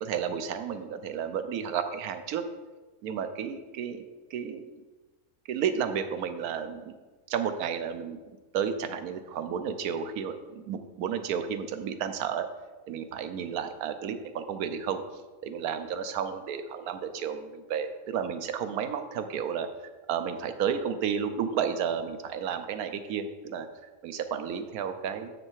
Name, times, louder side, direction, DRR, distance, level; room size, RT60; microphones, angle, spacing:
voice 1, 0.0-2.5 3.0-4.0 4.3-4.6 5.5-6.9 7.3-8.2 8.5-12.5 12.9-15.0 15.4-19.7 20.1-23.7 24.0-25.3, right 7 dB, 85° right, 9 dB, 1.2 m, -32 dB
7.5 x 6.4 x 4.7 m, 1.3 s
omnidirectional pair, 1.5 m